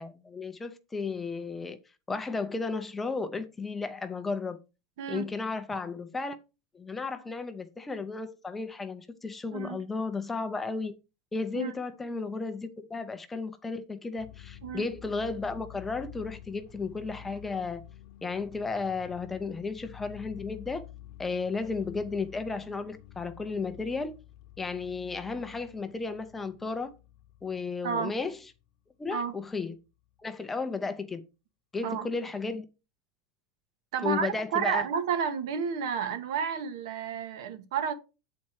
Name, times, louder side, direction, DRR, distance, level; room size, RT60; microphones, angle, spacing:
voice 1, 0.0-1.8 2.1-4.6 5.1-6.4 6.7-11.0 11.3-17.8 18.2-20.8 21.2-24.1 24.6-26.9 27.4-28.4 29.0-29.7 30.2-31.2 31.7-32.6 34.0-34.9, left 4 dB, 10° left, 0.5 m, -34 dB
voice 2, 5.0-5.3 9.5-9.8 11.5-11.7 14.6-14.9 27.8-28.2 29.1-29.3 31.8-32.1 33.9-37.9, right 7 dB, 70° right, 1.2 m, -31 dB
sound 1, 14.2-28.7 30.1-30.2, left 12 dB, 45° left, 1.0 m, -50 dB
8.3 x 4.3 x 4.6 m
supercardioid pair, 180°, 2 cm